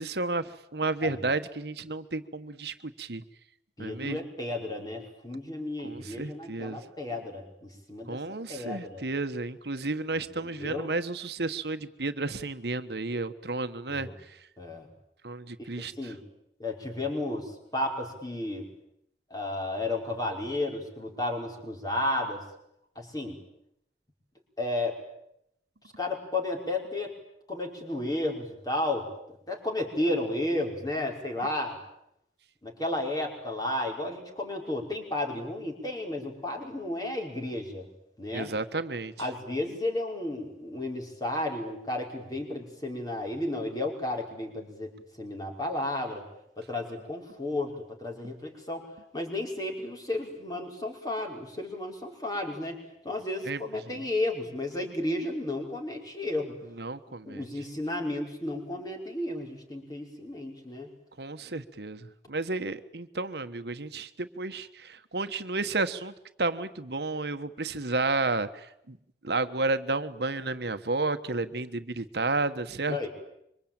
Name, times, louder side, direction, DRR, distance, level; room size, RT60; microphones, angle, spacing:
voice 1, 0.0-3.2 3.8-4.2 5.8-6.8 8.1-14.4 15.2-16.1 38.3-39.3 53.4-53.6 54.0-54.1 56.8-57.5 61.2-66.1 66.4-69.0 69.2-73.0, right 3 dB, 70° right, 10 dB, 1.3 m, -32 dB
voice 2, 3.8-8.2 8.5-9.1 10.1-10.9 13.9-14.1 14.6-14.9 15.6-16.2 16.6-18.7 19.3-22.4 23.0-23.4 24.6-25.0 26.0-27.1 27.5-29.1 29.5-31.8 32.6-37.9 38.2-38.5 39.2-44.9 45.2-46.2 46.6-48.8 49.1-52.8 53.0-56.6 57.3-60.9 72.9-73.1, left 1 dB, 20° left, 1 dB, 5.3 m, -33 dB
26.0 x 24.5 x 9.0 m, 0.78 s
head